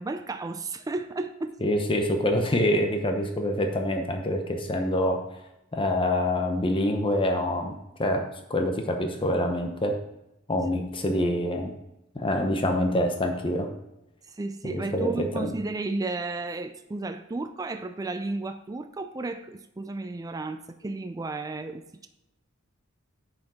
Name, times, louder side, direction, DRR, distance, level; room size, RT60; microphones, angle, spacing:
voice 1, 0.0-1.5 14.3-22.1, right 2 dB, 15° right, 8 dB, 0.4 m, -33 dB
voice 2, 1.6-5.2 5.7-7.7 8.0-8.2 8.5-9.9 10.5-11.7 12.1-13.7 14.6-15.5, left 1 dB, 25° left, 4 dB, 0.8 m, -26 dB
9.4 x 5.0 x 4.8 m, 0.89 s
head